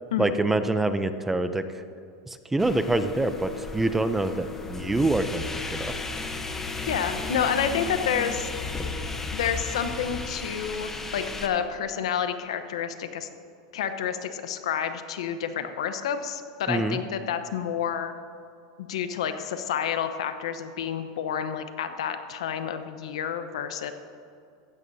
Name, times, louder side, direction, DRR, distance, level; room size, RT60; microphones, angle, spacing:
voice 1, 0.2-1.6 2.3-5.4 5.7-5.9 16.7-17.0, right 2 dB, 10° right, 10 dB, 0.5 m, -25 dB
sound 1, 2.6-11.5, left 3 dB, 10° left, 1.0 m, -35 dB
sound 2, 4.6-10.3, left 4 dB, 70° left, 1.9 m, -39 dB
voice 2, 6.8-8.5 9.3-13.3 13.7-18.1 18.8-23.9, left 8 dB, 85° left, 9 dB, 1.0 m, -29 dB
15.5 x 14.0 x 2.8 m, 2.4 s
supercardioid pair, 135°, 3 cm